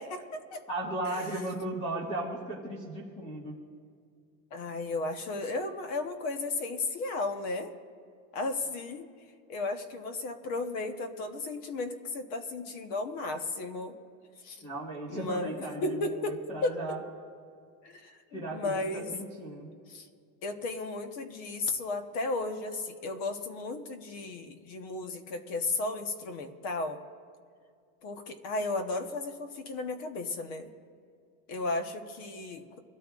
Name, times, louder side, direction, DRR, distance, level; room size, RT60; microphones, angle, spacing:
voice 1, 0.0-0.6 1.1-1.3 4.5-7.7 8.3-9.1 9.5-13.9 14.4-14.6 15.1-17.0 17.8-19.1 19.9-20.1 20.4-27.0 28.0-30.7 31.5-32.8, left 2 dB, 45° left, 7 dB, 1.2 m, -34 dB
voice 2, 0.7-3.6 14.6-17.0 18.3-19.7, right 1 dB, 15° left, -4 dB, 1.8 m, -36 dB
23.5 x 13.5 x 2.5 m, 2.2 s
supercardioid pair, 170°, 41 cm